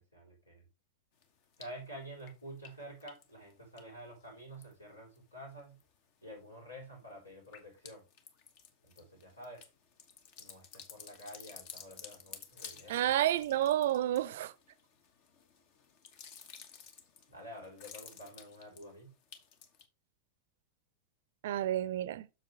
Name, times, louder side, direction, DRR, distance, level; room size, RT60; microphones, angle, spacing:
voice 1, 0.1-0.7 1.6-5.8 6.2-8.0 8.8-9.7 10.4-13.1 17.3-19.1, equal, 80° left, 4.0 m, -49 dB
sound 1, 1.2-1.9 2.2-5.2 5.5-6.1 6.5-19.8, left 7 dB, 45° left, 1.2 m, -53 dB
voice 2, 12.9-14.5 21.4-22.3, right 12 dB, 55° right, 0.5 m, -30 dB
7.6 x 6.6 x 3.3 m
figure-of-eight pair, 90°, 0 cm